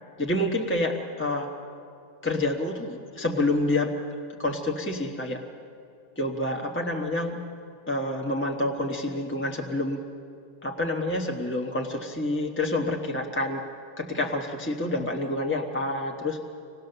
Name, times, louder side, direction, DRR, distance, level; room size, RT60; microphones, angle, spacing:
voice 1, 0.2-1.5 2.2-3.9 4.4-5.4 6.2-7.4 7.9-10.0 10.6-13.7 14.0-16.5, left 1 dB, 10° left, 2 dB, 1.0 m, -28 dB
25.0 x 18.5 x 6.7 m, 2.5 s
omnidirectional pair, 1.3 m